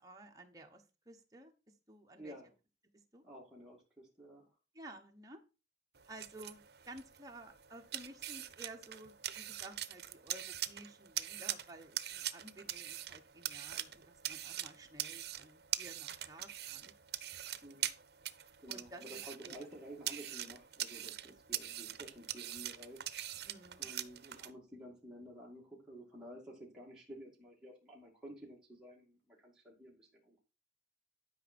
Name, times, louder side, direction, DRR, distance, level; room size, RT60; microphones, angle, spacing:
voice 1, 0.0-2.3 2.9-3.2 4.7-5.4 6.1-17.0 18.7-19.6 23.4-23.9, right 2 dB, 20° right, 2 dB, 1.2 m, -54 dB
voice 2, 2.2-2.5 3.2-4.4 17.6-17.9 18.6-23.0 23.8-30.4, equal, 5° right, -5 dB, 2.3 m, -52 dB
sound 1, 5.9-24.5, right 12 dB, 65° right, 0.7 m, -43 dB
11.5 x 5.4 x 4.4 m, 0.30 s
head